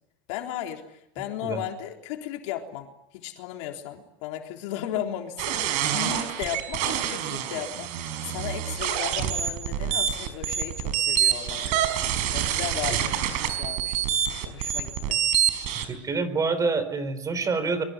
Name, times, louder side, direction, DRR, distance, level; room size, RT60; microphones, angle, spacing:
voice 1, 0.3-2.9 3.1-11.8 12.3-15.2, left 11 dB, 70° left, 3 dB, 3.8 m, -35 dB
sound 1, 5.4-15.9, right 10 dB, 55° right, 4.8 m, -27 dB
voice 2, 15.7-17.8, right 4 dB, 20° right, 13 dB, 4.0 m, -27 dB
24.5 x 23.5 x 9.7 m, 0.84 s
supercardioid pair, 140°, 16 cm